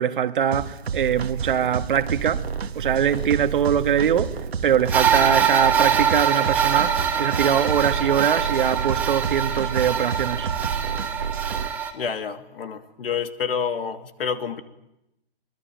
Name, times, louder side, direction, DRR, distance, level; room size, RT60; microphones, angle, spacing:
voice 1, 0.0-2.4 2.7-10.5, right 9 dB, 55° right, 1.7 m, -23 dB
sound 1, 0.5-11.7, right 6 dB, 85° right, 2.0 m, -30 dB
sound 2, 4.9-11.9, right 7 dB, 5° right, 1.8 m, -23 dB
voice 2, 11.9-14.6, left 6 dB, 65° left, 2.6 m, -28 dB
25.0 x 21.5 x 9.3 m
hypercardioid pair, 165°, 31 cm